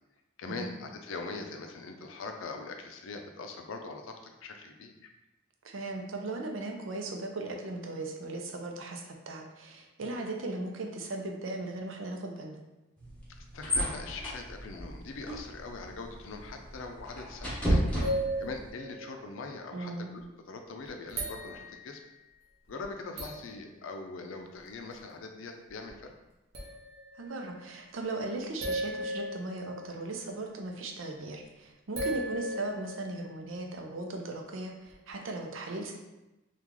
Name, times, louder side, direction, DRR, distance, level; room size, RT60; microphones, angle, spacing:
voice 1, 0.4-5.1 13.3-22.0 22.7-26.1, left 3 dB, 85° left, 4 dB, 0.4 m, -42 dB
voice 2, 5.6-12.6 19.7-20.1 27.2-35.9, right 2 dB, 85° right, 2 dB, 0.5 m, -37 dB
sound 1, 13.0-18.7, equal, 10° left, 0.9 m, -34 dB
sound 2, 18.0-19.6 20.2-20.3 20.9-21.9 22.8-22.9 23.2-23.5 25.9-26.0 26.5-27.4 28.6-30.3 32.0-33.6 34.9-35.0, right 1 dB, 55° right, 0.8 m, -36 dB
3.0 x 2.3 x 3.6 m, 0.98 s
head